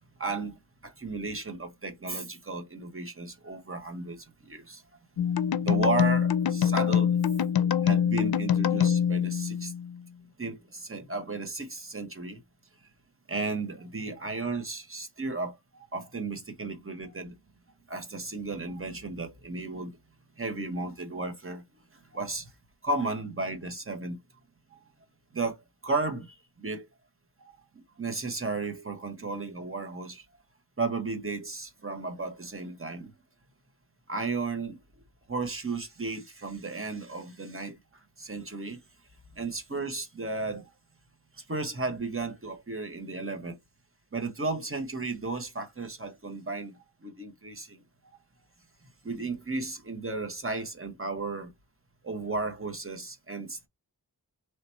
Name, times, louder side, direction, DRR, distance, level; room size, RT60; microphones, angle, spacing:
voice 1, 0.2-0.5 0.8-4.8 5.6-7.2 7.8-9.7 10.4-12.4 13.3-17.4 17.9-19.9 20.4-21.6 22.1-22.5 22.8-24.2 25.3-26.9 27.4-27.5 28.0-30.2 30.8-33.1 34.1-34.8 35.3-37.8 38.2-38.8 39.4-40.7 41.5-43.6 44.1-46.7 47.0-48.2 49.0-51.5 52.0-53.7, right 3 dB, 35° right, 1.0 m, -34 dB
sound 1, 5.2-10.0, left 8 dB, 65° left, 0.5 m, -25 dB
3.3 x 2.8 x 4.3 m
wide cardioid pair, 70°, 40 cm